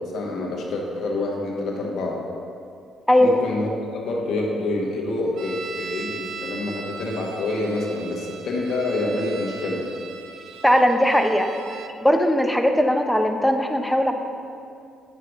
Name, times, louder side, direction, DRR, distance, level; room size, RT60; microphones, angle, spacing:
voice 1, 0.1-2.2 3.2-3.7 4.0-9.8, left 2 dB, 65° left, -1 dB, 1.2 m, -27 dB
voice 2, 3.1-3.4 10.6-11.5 12.0-14.1, equal, 5° left, 5 dB, 0.6 m, -19 dB
sound 1, 5.4-12.0, right 5 dB, 65° right, 0.4 m, -38 dB
8.8 x 6.1 x 2.5 m, 2.5 s
supercardioid pair, 65°, 0 cm